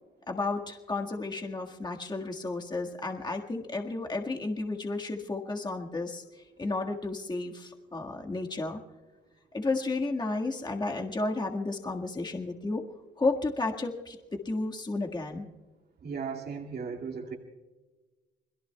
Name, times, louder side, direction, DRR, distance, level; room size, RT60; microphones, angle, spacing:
voice 1, 0.3-6.2 6.6-8.8 9.5-12.8 13.2-15.5, left 3 dB, 20° left, 2 dB, 1.7 m, -32 dB
voice 2, 16.0-17.4, right 5 dB, 55° right, 0 dB, 2.2 m, -36 dB
29.0 x 21.5 x 2.3 m, 1.2 s
cardioid pair, 90°, 20 cm